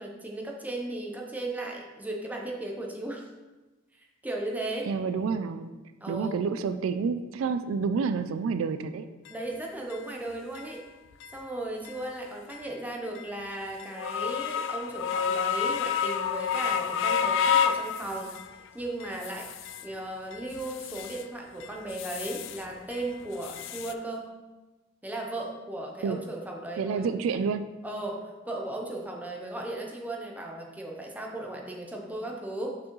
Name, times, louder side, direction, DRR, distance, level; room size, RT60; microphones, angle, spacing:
voice 1, 0.0-3.3 4.2-4.9 6.0-6.4 9.3-10.8 11.3-19.5 19.8-24.3 25.0-27.1 27.8-32.8, right 1 dB, 10° right, 0 dB, 0.8 m, -36 dB
voice 2, 4.9-5.7 6.1-9.1 26.0-26.2 26.8-27.7, right 5 dB, 80° right, 10 dB, 0.3 m, -29 dB
sound 1, 9.3-9.4 9.9-10.0 10.5-10.6 11.2-11.4 11.8-12.0 12.5-12.6 13.2-13.3 13.8-18.5 19.0-19.9 20.3-21.2 21.6-22.6 22.9-23.9, left 7 dB, 65° left, 0.3 m, -30 dB
6.1 x 6.1 x 3.1 m, 1.1 s
head